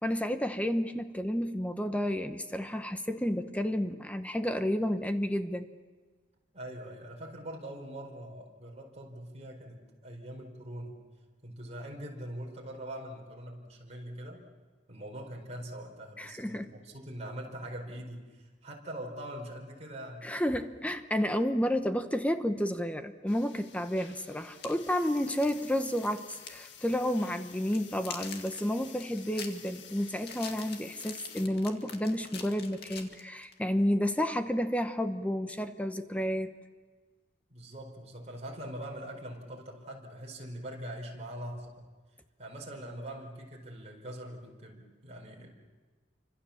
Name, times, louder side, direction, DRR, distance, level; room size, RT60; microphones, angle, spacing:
voice 1, 0.0-5.7 16.2-16.7 20.2-36.5, equal, 10° left, 8 dB, 0.9 m, -31 dB
voice 2, 6.5-11.0 11.4-14.4 14.9-20.3 37.5-41.7 42.4-45.5, right 1 dB, 40° right, -1 dB, 4.5 m, -43 dB
sound 1, 23.3-31.5, left 8 dB, 85° left, 1.7 m, -51 dB
sound 2, 24.4-26.7 26.9-27.1 27.5-33.6, left 6 dB, 60° left, 2.3 m, -45 dB
28.0 x 25.5 x 7.2 m, 1.4 s
head